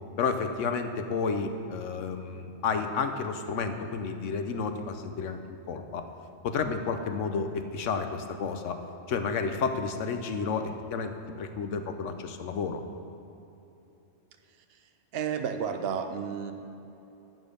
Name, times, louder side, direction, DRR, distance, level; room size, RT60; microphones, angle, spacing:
voice 1, 0.2-5.4 5.7-6.0 6.4-8.8 9.1-11.1 11.4-12.8, left 5 dB, 75° left, 7 dB, 1.1 m, -31 dB
voice 2, 15.1-16.5, right 7 dB, 55° right, 7 dB, 0.9 m, -31 dB
11.5 x 7.3 x 5.2 m, 2.9 s
omnidirectional pair, 1.3 m